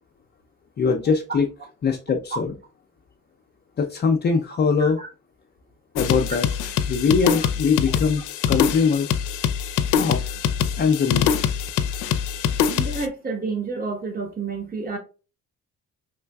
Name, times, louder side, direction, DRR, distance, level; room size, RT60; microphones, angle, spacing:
voice 1, 0.8-1.5 1.8-2.5 3.8-5.0 6.0-6.5 6.9-9.1 10.0-10.2 10.8-11.4, left 5 dB, 35° left, 0.5 m, -22 dB
sound 1, 5.9-13.1, left 8 dB, 85° left, 0.5 m, -24 dB
voice 2, 12.7-15.0, right 4 dB, 30° right, 1.1 m, -30 dB
3.7 x 3.2 x 2.2 m
cardioid pair, 90°, 30 cm